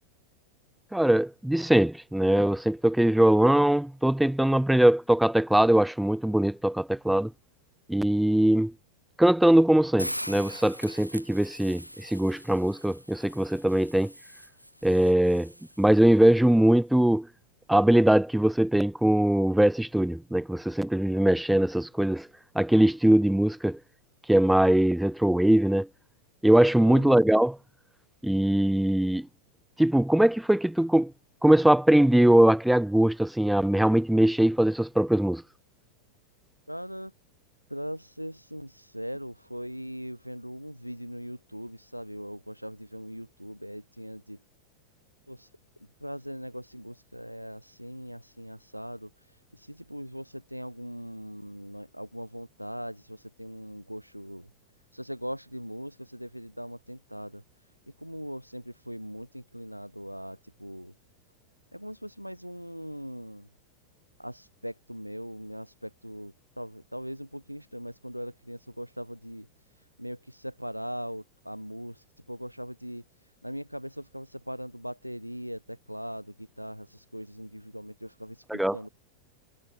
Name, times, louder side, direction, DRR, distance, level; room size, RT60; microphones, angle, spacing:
voice 1, 0.9-7.3 7.9-8.7 9.2-14.1 14.8-15.5 15.8-17.3 17.7-22.3 22.6-23.8 24.3-25.9 26.4-27.6 28.2-29.3 29.8-31.1 31.4-35.4 78.5-78.8, right 1 dB, 5° right, 0.3 m, -21 dB
Hiss, 10.0-16.1, equal, 90° left, 4.5 m, -42 dB
voice 2, 26.9-27.2 36.7-37.1 37.7-44.4 45.3-45.5 45.8-54.5 54.9-57.7 58.0-60.9 61.7-63.5 64.2-78.9, equal, 90° right, 3.9 m, -40 dB
figure-of-eight pair, 90°, 0 cm